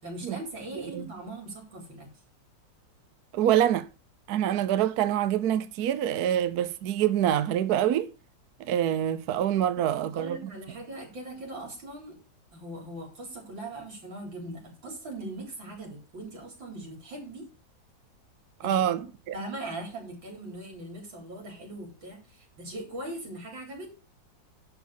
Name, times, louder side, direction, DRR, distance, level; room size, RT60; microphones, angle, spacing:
voice 1, 0.0-2.1 9.8-12.1 12.5-17.4 18.6-19.0 19.3-23.9, right 1 dB, 85° right, 4.5 m, -40 dB
voice 2, 3.3-3.9 4.3-8.1 8.6-10.4 18.6-19.0, right 11 dB, 65° right, 1.1 m, -25 dB
11.5 x 4.0 x 7.2 m
omnidirectional pair, 2.0 m